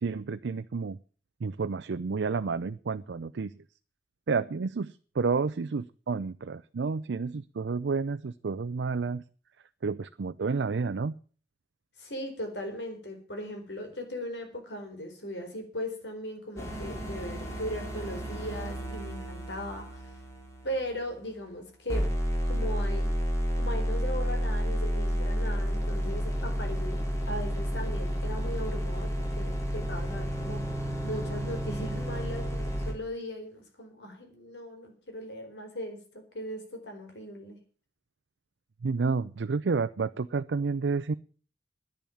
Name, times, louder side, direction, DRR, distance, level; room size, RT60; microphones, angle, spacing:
voice 1, 0.0-1.0 1.4-3.5 4.3-9.2 9.8-11.2 38.8-41.1, right 4 dB, 90° right, 11 dB, 0.5 m, -30 dB
voice 2, 12.0-20.2 20.6-22.1 22.4-23.1 23.5-37.6, equal, 85° left, 4 dB, 4.3 m, -38 dB
sound 1, 16.6-21.5 21.9-32.9, equal, 15° left, 3.1 m, -31 dB
10.5 x 10.0 x 7.0 m, 0.41 s
head